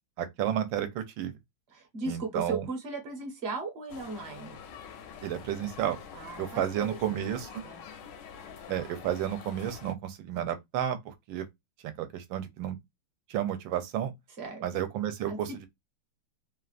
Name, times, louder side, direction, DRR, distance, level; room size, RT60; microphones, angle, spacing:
voice 1, 0.2-1.3 2.1-2.7 5.2-6.0 6.4-7.6 8.7-11.5 11.8-12.8 13.3-14.1 14.6-15.7, right 10 dB, 80° right, 1.3 m, -32 dB
voice 2, 1.7-4.6 6.1-6.9 7.1-7.2 7.6-7.8 14.4-14.7 15.3-15.7, right 3 dB, 40° right, 1.0 m, -37 dB
sound 1, 3.9-9.9, left 6 dB, 75° left, 1.2 m, -46 dB
3.4 x 2.4 x 2.4 m
omnidirectional pair, 2.2 m